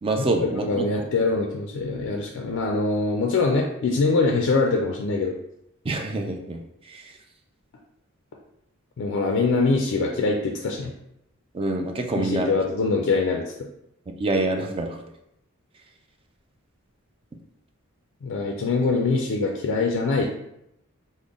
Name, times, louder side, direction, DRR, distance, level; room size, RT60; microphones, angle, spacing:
voice 1, 0.0-1.1 5.8-7.2 11.5-12.5 14.2-15.0, right 2 dB, 25° right, 3 dB, 0.4 m, -26 dB
voice 2, 0.6-5.3 9.0-10.9 12.2-13.5 18.2-20.2, left 3 dB, 60° left, 1 dB, 0.4 m, -23 dB
3.7 x 2.1 x 3.6 m, 0.81 s
head